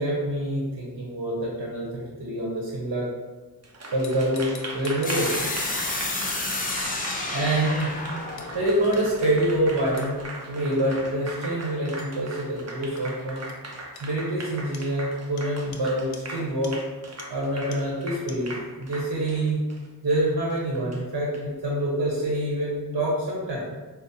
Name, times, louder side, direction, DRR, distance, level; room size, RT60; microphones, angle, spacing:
voice 1, 0.0-3.1 3.9-5.3 7.3-7.9 8.5-10.1 10.5-13.4 14.0-16.8 17.3-19.6 20.0-23.7, right 1 dB, 60° right, -5 dB, 1.0 m, -26 dB
Applause, 3.6-21.4, right 2 dB, 40° right, 0.7 m, -39 dB
sound 1, 4.0-5.5 5.9-6.1 6.7-6.8 7.1-7.2 7.8-7.9 8.4-8.5 8.9-9.0 10.0-10.1 12.0-12.1 13.0-13.1 13.5-13.6 14.0-14.1 14.7-14.9 15.4-15.5 15.7-15.8 16.1-16.2 16.6-16.7 17.2-17.3 17.7-17.8 18.3-18.4, left 5 dB, 65° left, 0.6 m, -44 dB
sound 2, 5.0-9.9, left 2 dB, 20° left, 0.5 m, -31 dB
4.9 x 2.1 x 2.8 m, 1.3 s
cardioid pair, 70°, 41 cm